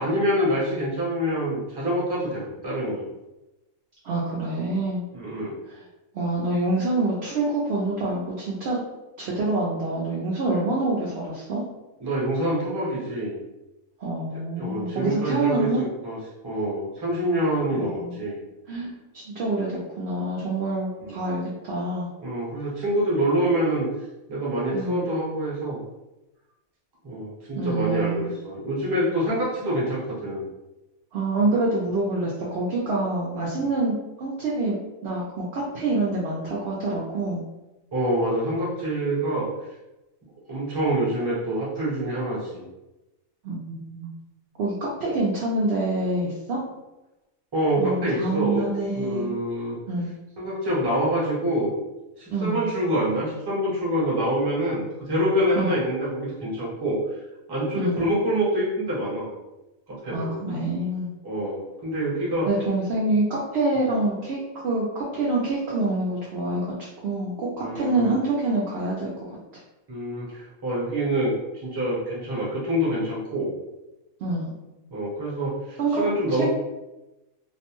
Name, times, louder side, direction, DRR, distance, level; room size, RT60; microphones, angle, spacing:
voice 1, 0.0-3.0 5.1-5.5 12.0-13.4 14.6-16.2 16.4-18.3 21.0-21.2 22.2-23.9 24.3-25.8 27.0-30.4 37.9-39.5 40.5-42.6 47.5-49.8 50.4-51.7 52.2-57.0 57.5-59.3 59.9-60.3 61.2-62.5 67.6-68.2 69.9-73.5 74.9-76.5, right 1 dB, 25° right, -7 dB, 0.7 m, -26 dB
voice 2, 4.0-5.0 5.7-5.8 6.1-8.8 9.2-11.6 14.0-15.9 17.7-18.2 18.7-22.1 24.7-25.1 27.6-28.3 31.1-37.4 43.4-44.1 44.6-46.6 47.8-49.3 49.9-50.1 52.3-52.6 55.6-55.7 57.8-58.0 60.1-61.1 62.5-66.7 67.0-69.4 74.2-74.5 75.8-76.0 76.4-76.5, right 2 dB, 65° right, -5 dB, 0.7 m, -26 dB
2.5 x 2.1 x 2.9 m, 1.0 s
omnidirectional pair, 1.4 m